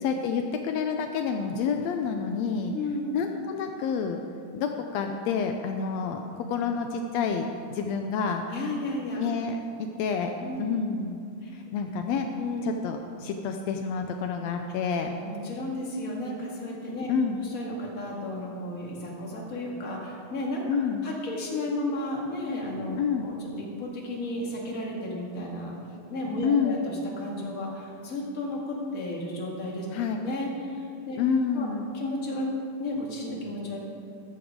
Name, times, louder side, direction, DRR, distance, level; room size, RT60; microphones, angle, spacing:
voice 1, 0.0-2.7 3.1-4.2 4.5-8.4 9.2-11.2 11.5-12.3 12.6-15.1 17.1-17.4 20.7-21.0 22.9-23.3 26.4-26.8 29.9-30.2 31.2-31.9, left 6 dB, 85° left, 4 dB, 1.5 m, -28 dB
voice 2, 2.7-3.1 8.5-9.2 10.4-10.6 11.4-11.5 12.4-12.7 15.2-17.1 17.4-20.6 21.0-25.7 26.1-29.9 30.2-31.2 31.5-31.7 31.9-32.5 32.8-33.8, left 1 dB, 30° left, -2 dB, 1.8 m, -33 dB
14.0 x 12.0 x 3.7 m, 2.5 s
omnidirectional pair, 3.8 m